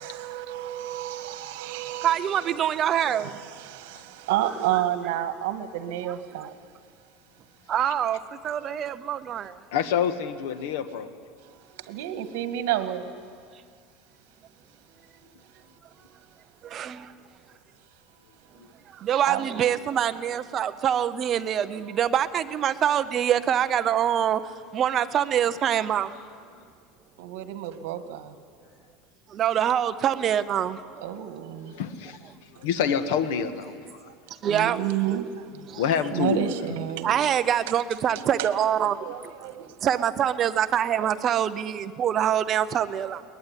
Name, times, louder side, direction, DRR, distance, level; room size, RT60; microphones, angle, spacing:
voice 1, 0.0-6.5 11.9-13.1 19.3-19.6 27.2-28.3 31.0-31.7 34.4-35.4 36.1-37.2 38.1-38.3 38.8-39.7 41.0-41.1, right 12 dB, 75° right, 10 dB, 1.7 m, -31 dB
voice 2, 2.0-3.4 6.0-6.5 7.7-9.6 16.6-17.1 18.9-24.4 24.7-26.1 29.3-31.3 34.4-35.2 35.7-35.8 37.0-43.2, right 9 dB, 25° right, 11 dB, 0.6 m, -25 dB
voice 3, 9.7-11.1 31.7-32.2 32.6-33.8 35.7-36.4, left 7 dB, 75° left, 10 dB, 1.6 m, -26 dB
22.0 x 20.0 x 9.8 m, 2.1 s
cardioid pair, 175°, 0 cm